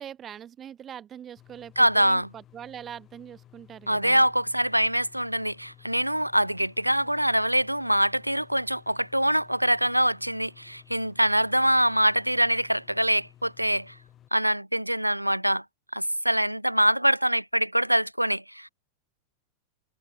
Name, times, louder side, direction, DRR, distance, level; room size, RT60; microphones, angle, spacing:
voice 1, 0.0-4.2, right 9 dB, 25° right, 1.9 m, -42 dB
sound 1, 1.4-14.3, left 12 dB, 30° left, 7.3 m, -55 dB
voice 2, 1.8-2.3 3.9-13.9 14.3-15.6 15.9-18.7, right 1 dB, 90° right, 0.5 m, -24 dB
figure-of-eight pair, 90°, 0 cm